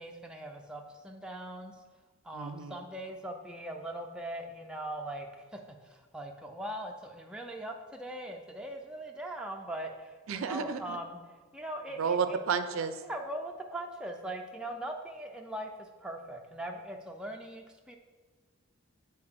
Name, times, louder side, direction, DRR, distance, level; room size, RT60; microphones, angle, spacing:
voice 1, 0.0-1.7 2.2-11.2 11.5-12.4 13.0-18.0, right 1 dB, 5° right, 1 dB, 0.3 m, -40 dB
voice 2, 2.3-2.8 10.3-11.0 12.0-13.0, right 6 dB, 70° right, 10 dB, 0.4 m, -31 dB
6.6 x 4.3 x 3.5 m, 1.4 s
head